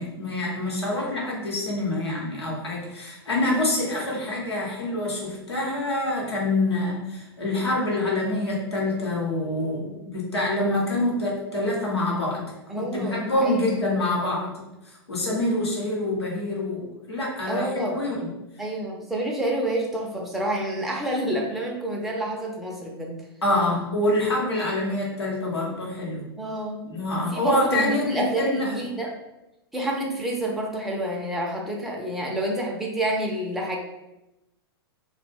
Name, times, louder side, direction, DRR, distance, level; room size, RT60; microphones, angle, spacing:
voice 1, 0.0-12.4 12.8-14.6 15.1-18.3 23.4-26.2 26.8-28.8, left 1 dB, 80° left, -4 dB, 0.8 m, -26 dB
voice 2, 12.7-13.6 17.5-18.0 18.6-23.2 26.4-26.8 27.3-29.1 29.7-33.8, right 1 dB, ahead, -2 dB, 0.4 m, -28 dB
2.1 x 2.1 x 3.2 m, 0.94 s
figure-of-eight pair, 100°, 13 cm